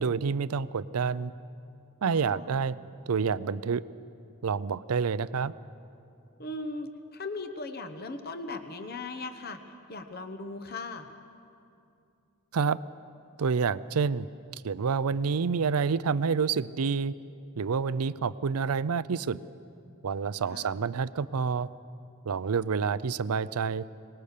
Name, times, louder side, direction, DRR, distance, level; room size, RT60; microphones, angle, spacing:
voice 1, 0.0-1.3 2.0-2.8 3.1-3.8 4.4-5.5 12.5-12.8 13.4-14.3 14.5-17.1 17.6-19.4 20.0-21.7 22.2-23.8, right 5 dB, 85° right, 17 dB, 0.5 m, -28 dB
voice 2, 2.0-2.6 6.4-11.1 20.5-20.8, left 3 dB, 45° left, 8 dB, 1.1 m, -38 dB
24.5 x 19.5 x 6.7 m, 2.6 s
head